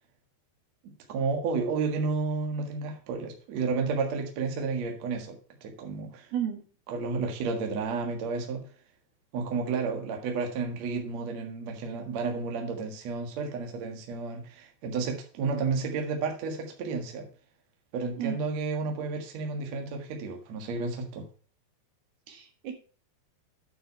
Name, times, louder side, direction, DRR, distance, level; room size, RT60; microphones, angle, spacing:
voice 1, 0.8-6.3 6.9-8.6 9.3-17.3 17.9-21.2, right 4 dB, 55° right, 3 dB, 2.3 m, -31 dB
voice 2, 22.3-22.7, right 9 dB, 70° right, 4 dB, 3.4 m, -32 dB
9.4 x 6.3 x 4.6 m, 0.41 s
omnidirectional pair, 4.8 m